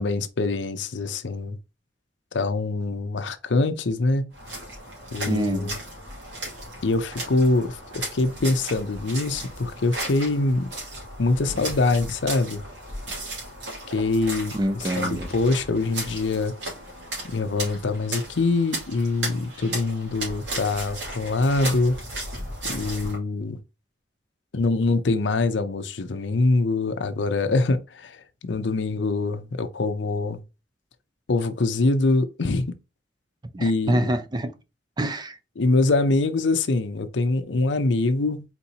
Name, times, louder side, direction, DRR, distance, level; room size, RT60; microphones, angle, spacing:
voice 1, 0.0-1.6 2.3-4.3 5.1-5.8 6.8-10.7 11.2-12.6 13.9-14.5 15.0-16.5 17.2-22.0 22.7-23.6 24.5-30.4 31.3-32.7 33.6-34.1 35.6-38.4, left 3 dB, 75° left, 0.6 m, -24 dB
sound 1, 4.3-23.2, right 1 dB, 80° right, 2.6 m, -35 dB
voice 2, 5.3-5.8 14.5-15.3 33.5-34.5 35.0-35.4, right 1 dB, 25° right, 0.5 m, -26 dB
4.4 x 4.1 x 2.9 m
head